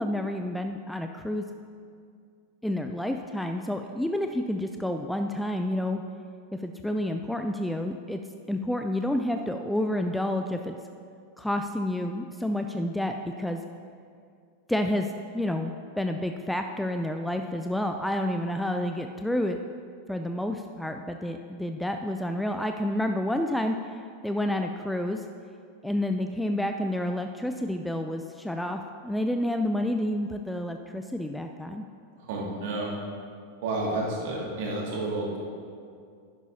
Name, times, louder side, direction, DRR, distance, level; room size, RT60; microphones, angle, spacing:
voice 1, 0.0-1.4 2.6-6.0 6.6-8.2 8.5-10.8 11.4-13.6 14.7-15.1 15.3-19.6 20.1-25.3 25.8-31.9, left 1 dB, 5° left, 5 dB, 0.4 m, -29 dB
voice 2, 32.2-32.9 33.6-35.4, right 2 dB, 50° right, -3 dB, 2.1 m, -30 dB
11.0 x 10.5 x 2.7 m, 2.3 s
figure-of-eight pair, 90°, 0 cm